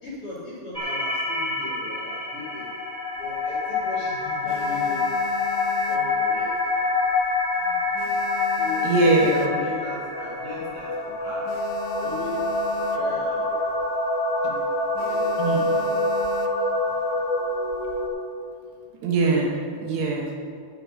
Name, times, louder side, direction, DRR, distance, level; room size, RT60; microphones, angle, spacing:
voice 1, 0.0-2.7 3.2-5.0 5.9-6.8 7.5-8.1 8.6-11.4 12.0-12.3 12.9-13.7 14.4-14.6 15.0-15.4 15.9-16.0, left 2 dB, 40° left, -6 dB, 2.1 m, -38 dB
sound 1, 0.7-18.1, left 2 dB, 10° right, 1.6 m, -26 dB
sound 2, 3.2-3.9 4.3-6.8 7.1-7.4 7.7-10.0 10.4-10.5 10.7-10.8 11.2-13.4 13.7-13.9 14.2-14.5 15.0-16.8 17.5-18.1, left 7 dB, 80° left, 2.9 m, -40 dB
voice 2, 8.8-9.5 14.4-14.5 15.4-15.7 19.0-20.4, right 2 dB, 70° right, -1 dB, 3.1 m, -22 dB
18.5 x 6.5 x 5.2 m, 2.2 s
omnidirectional pair, 5.3 m